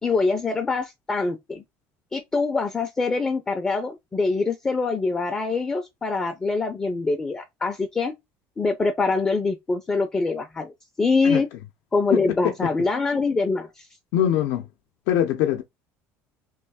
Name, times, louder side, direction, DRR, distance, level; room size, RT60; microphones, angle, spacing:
voice 1, 0.0-1.6 2.1-8.1 8.6-10.7 11.0-11.5 11.9-13.9, left 3 dB, 15° left, 0.4 m, -24 dB
voice 2, 14.1-14.6 15.1-15.6, left 11 dB, 75° left, 0.5 m, -22 dB
3.1 x 2.5 x 3.4 m
cardioid pair, 165°, 6 cm